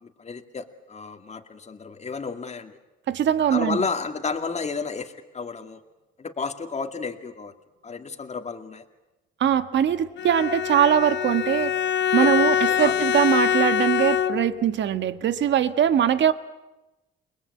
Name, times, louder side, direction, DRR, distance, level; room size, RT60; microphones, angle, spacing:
voice 1, 0.0-2.8 3.5-5.8 6.2-7.5 7.8-8.9 12.2-13.0, left 5 dB, 35° left, 6 dB, 2.3 m, -32 dB
voice 2, 3.1-3.8 9.4-11.7 12.1-16.3, right 9 dB, 65° right, 11 dB, 1.5 m, -21 dB
Bowed string instrument, 10.2-14.7, left 9 dB, 65° left, 1.1 m, -24 dB
29.5 x 21.0 x 8.6 m, 1.0 s
cardioid pair, 90°, 20 cm